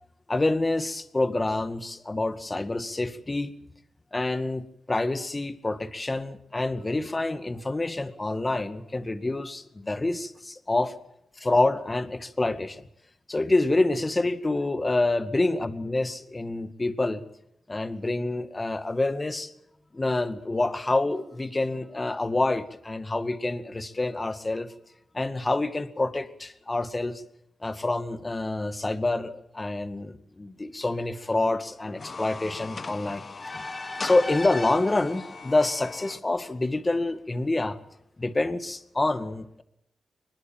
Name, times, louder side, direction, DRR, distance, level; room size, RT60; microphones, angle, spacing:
voice 1, 0.3-3.5 4.1-10.9 11.4-12.8 13.3-17.2 17.7-19.5 19.9-24.7 25.1-27.2 27.6-37.8 38.2-39.6, left 2 dB, 30° left, 10 dB, 2.1 m, -27 dB
sound 1, 31.8-36.2, left 4 dB, 45° left, 1.0 m, -40 dB
22.5 x 21.0 x 7.6 m, 0.76 s
cardioid pair, 60°, 0 cm